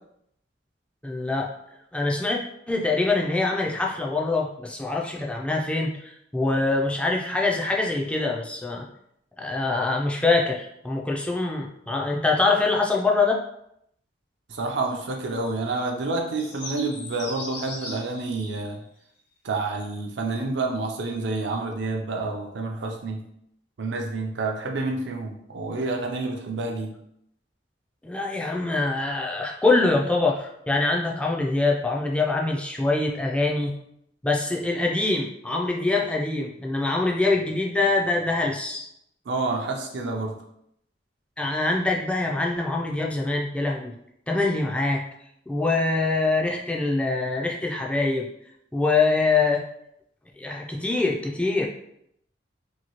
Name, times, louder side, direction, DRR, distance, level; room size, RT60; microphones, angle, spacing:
voice 1, 1.0-1.5 1.9-2.4 2.7-8.9 9.4-13.4 28.0-33.7 34.2-38.9 41.4-43.9 44.3-45.0 45.5-48.3 48.7-49.6 50.4-51.7, left 3 dB, 5° left, -1 dB, 0.3 m, -24 dB
voice 2, 14.5-18.8 19.4-23.2 23.8-26.9 39.3-40.4, right 3 dB, 65° right, 2 dB, 0.5 m, -28 dB
sound 1, 16.4-18.8 21.5-21.6, left 2 dB, 75° left, 1.0 m, -39 dB
2.8 x 2.7 x 2.9 m, 0.75 s
head